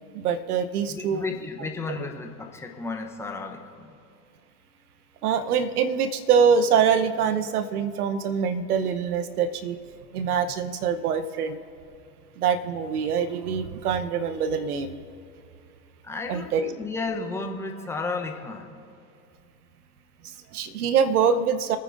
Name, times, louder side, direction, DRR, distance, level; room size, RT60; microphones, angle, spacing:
voice 1, 0.1-1.2 5.2-9.8 10.1-11.6 12.4-15.0 16.3-16.7 20.2-21.8, right 6 dB, 60° right, 11 dB, 1.1 m, -24 dB
voice 2, 0.9-3.9 16.0-18.8, left 3 dB, 5° left, 3 dB, 0.9 m, -33 dB
26.5 x 9.4 x 2.6 m, 2.5 s
hypercardioid pair, 115°, 50 cm